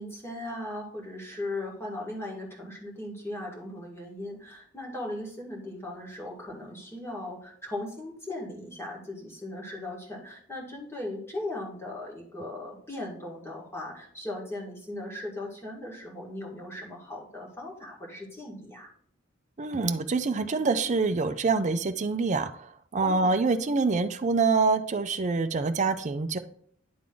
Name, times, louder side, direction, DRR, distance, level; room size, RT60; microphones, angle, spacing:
voice 1, 0.0-18.9 23.0-23.4, left 1 dB, 15° left, -3 dB, 2.0 m, -38 dB
voice 2, 19.6-22.5 22.9-26.4, right 4 dB, 40° right, 9 dB, 0.5 m, -25 dB
10.5 x 3.6 x 3.8 m, 0.63 s
head